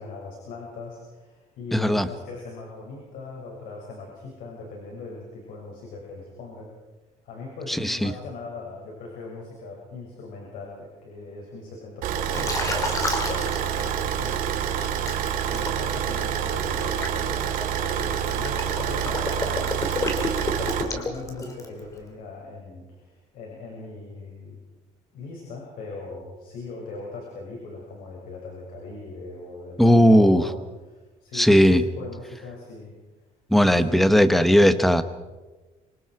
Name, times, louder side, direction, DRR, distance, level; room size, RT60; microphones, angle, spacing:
voice 1, 0.0-6.7 7.2-14.8 15.1-20.2 20.7-24.6 25.1-32.9 33.6-34.0, left 3 dB, 75° left, -2 dB, 6.7 m, -39 dB
voice 2, 1.7-2.1 7.7-8.1 29.8-30.4 31.3-31.8 33.5-35.0, equal, ahead, 11 dB, 1.1 m, -17 dB
Car / Idling, 12.0-20.8, right 9 dB, 75° right, 2.9 m, -27 dB
Liquid, 12.3-14.3 14.8-21.8, left 2 dB, 20° left, 3.1 m, -31 dB
27.0 x 25.0 x 4.9 m, 1.2 s
cardioid pair, 165°, 14 cm